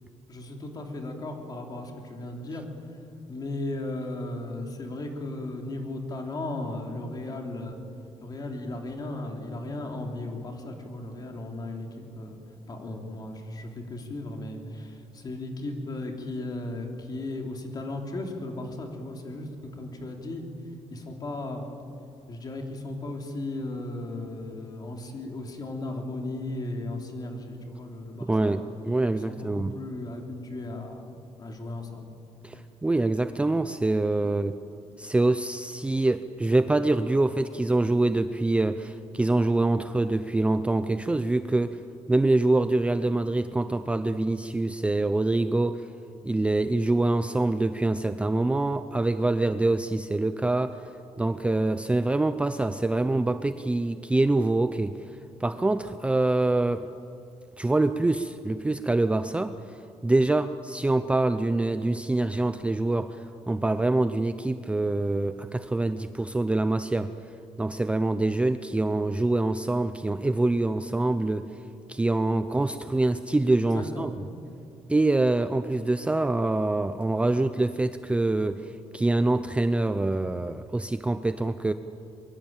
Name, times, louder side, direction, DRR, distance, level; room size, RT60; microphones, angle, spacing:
voice 1, 0.3-2.6 3.3-7.8 8.2-11.9 12.1-12.4 12.7-20.4 20.9-21.6 22.3-28.7 29.1-32.1 32.5-32.7 73.6-74.2, left 2 dB, 35° left, 2 dB, 3.6 m, -36 dB
voice 2, 28.2-29.7 32.4-34.6 35.0-41.8 42.1-45.9 46.2-55.0 55.4-56.9 57.6-67.1 67.6-71.6 71.9-74.1 74.9-81.7, right 2 dB, 10° right, 10 dB, 0.6 m, -25 dB
23.0 x 23.0 x 8.9 m, 2.5 s
cardioid pair, 150°, 12 cm